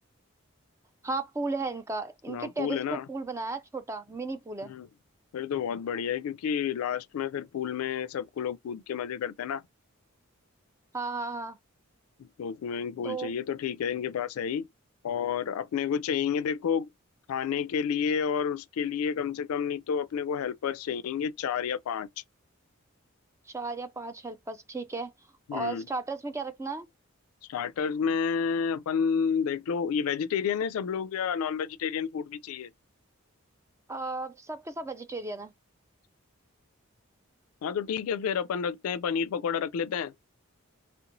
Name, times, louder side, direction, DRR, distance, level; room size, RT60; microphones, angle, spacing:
voice 1, 1.0-4.7 10.9-11.6 13.0-13.3 23.5-25.1 25.5-26.9 33.9-35.5, right 3 dB, 15° right, 0.3 m, -34 dB
voice 2, 2.3-3.1 4.7-4.9 5.3-9.6 12.2-14.7 15.0-16.9 17.3-22.1 25.5-25.9 27.5-32.7 37.6-40.1, left 7 dB, 85° left, 0.3 m, -30 dB
3.3 x 2.9 x 2.5 m
head